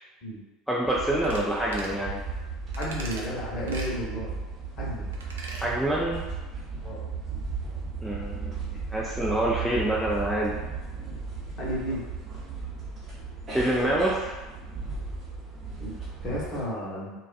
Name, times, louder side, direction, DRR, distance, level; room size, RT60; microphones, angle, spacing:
voice 1, 0.7-2.2 5.6-6.2 8.0-8.6 8.9-10.6 13.5-14.3, right 1 dB, ahead, -6 dB, 0.4 m, -26 dB
sound 1, 0.9-16.7, right 4 dB, 35° right, 0.7 m, -36 dB
sound 2, 1.2-1.4 1.7-2.0 2.7-3.3 3.7-3.9 5.1-5.7 6.0-6.1, right 2 dB, 70° right, 0.4 m, -40 dB
voice 2, 2.8-4.3 4.8-5.1 6.8-7.0 11.6-12.0 15.8-15.9 16.2-17.1, equal, 40° left, -6 dB, 1.0 m, -32 dB
2.3 x 2.3 x 2.4 m, 1.1 s
figure-of-eight pair, 70°, 0 cm